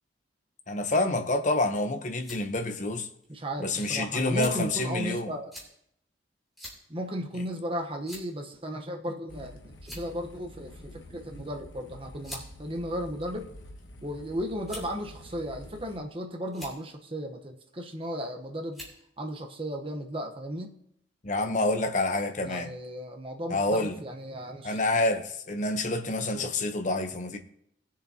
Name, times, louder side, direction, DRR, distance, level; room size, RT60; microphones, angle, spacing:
voice 1, 0.7-3.1 3.6-5.3 21.2-22.7 23.5-23.9 24.6-27.4, left 2 dB, 40° left, 0.9 m, -28 dB
sound 1, 2.2-2.4 3.2-3.3 4.4-4.7 5.5-5.7 6.6-6.8 7.2-7.3 8.0-8.4 9.3-9.5 9.8-10.3 11.4-11.5 12.2-12.5 13.3-13.9 14.6-15.0 15.8-16.1 16.5-16.8 18.0-18.3 18.7-19.0, equal, ahead, 2.9 m, -44 dB
voice 2, 3.3-5.5 6.9-13.5 14.0-18.8 19.2-20.8 22.4-24.8 26.3-26.5, equal, 30° right, 1.0 m, -35 dB
sound 2, 9.3-16.0, left 1 dB, 75° left, 1.2 m, -48 dB
20.0 x 7.2 x 2.9 m
head